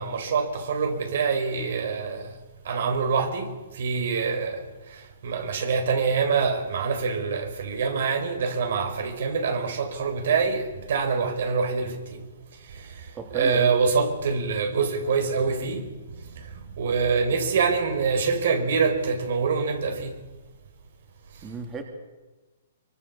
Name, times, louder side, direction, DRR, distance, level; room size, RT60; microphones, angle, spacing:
voice 1, 0.0-2.4 2.6-3.5 3.7-4.7 5.2-12.2 12.7-13.0 13.3-15.8 16.4-16.5 16.8-20.2, right 5 dB, 65° right, 4.8 m, -25 dB
voice 2, 13.1-13.7 21.4-21.8, right 4 dB, 15° right, 2.9 m, -33 dB
24.0 x 23.0 x 7.1 m
hypercardioid pair, 150°, 0 cm